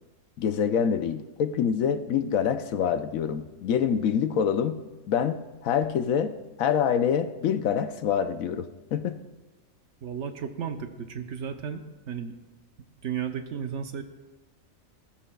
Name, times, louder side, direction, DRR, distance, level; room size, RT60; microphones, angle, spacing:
voice 1, 0.4-4.8 5.1-9.2, left 8 dB, 90° left, 10 dB, 1.1 m, -26 dB
voice 2, 10.0-12.4 13.0-14.0, right 7 dB, 65° right, 7 dB, 1.2 m, -34 dB
20.0 x 13.5 x 2.3 m, 1.1 s
omnidirectional pair, 1.4 m